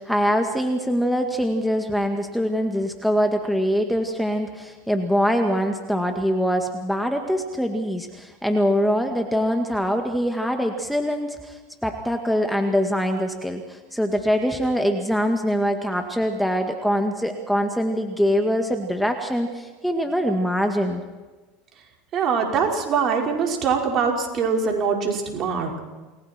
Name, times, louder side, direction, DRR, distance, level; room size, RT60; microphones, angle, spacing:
voice 1, 0.0-21.0, equal, ahead, 4 dB, 2.1 m, -23 dB
voice 2, 22.1-25.8, right 5 dB, 45° right, 1 dB, 5.2 m, -23 dB
29.0 x 21.0 x 4.6 m, 1.2 s
hypercardioid pair, 90°, 0 cm